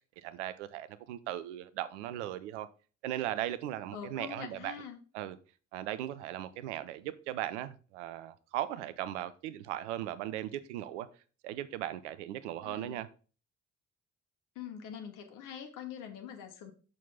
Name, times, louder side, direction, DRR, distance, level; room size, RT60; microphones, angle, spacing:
voice 1, 0.2-2.7 3.0-4.7 5.1-5.4 5.7-11.1 11.4-13.1, right 12 dB, 75° right, 0.6 m, -38 dB
voice 2, 3.9-5.0 12.6-13.0 14.5-16.7, left 8 dB, 60° left, 1.1 m, -44 dB
6.3 x 4.2 x 5.6 m
figure-of-eight pair, 40°, 36 cm